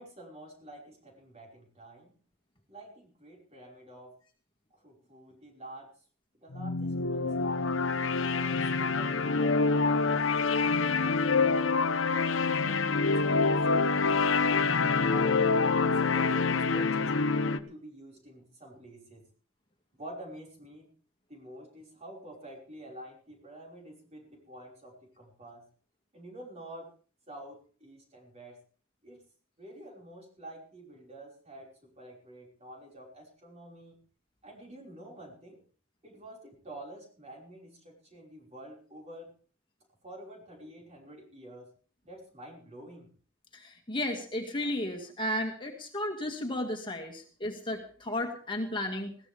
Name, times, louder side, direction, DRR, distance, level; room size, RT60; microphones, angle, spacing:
voice 1, 0.0-2.1 2.7-4.1 4.7-5.9 6.4-7.7 8.2-11.6 12.3-15.4 15.7-19.2 20.0-20.9 21.3-25.7 26.1-26.9 27.3-28.6 29.0-29.3 29.6-34.0 34.4-35.6 36.0-39.3 40.0-41.7 42.0-43.1, right 1 dB, 35° right, -1 dB, 5.4 m, -49 dB
sound 1, 6.5-17.6, left 4 dB, 85° left, 1.0 m, -26 dB
voice 2, 43.5-49.1, left 1 dB, 25° left, 2 dB, 2.1 m, -34 dB
20.5 x 16.5 x 3.5 m, 0.41 s
head